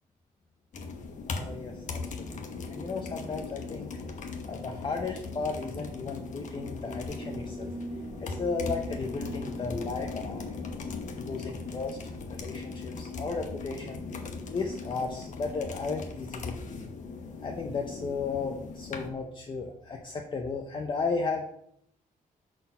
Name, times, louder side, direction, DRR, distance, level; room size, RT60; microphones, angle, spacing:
sound 1, 0.7-19.1, left 4 dB, 60° left, 1.0 m, -39 dB
voice 1, 1.3-2.0 2.3-3.9 4.4-7.7 8.2-10.4 11.2-14.0 14.5-16.9 17.4-21.4, left 4 dB, 35° left, 2 dB, 0.7 m, -34 dB
sound 2, 6.6-11.0, right 1 dB, 25° right, 1.0 m, -42 dB
6.1 x 4.3 x 5.5 m, 0.71 s
wide cardioid pair, 145°, 15 cm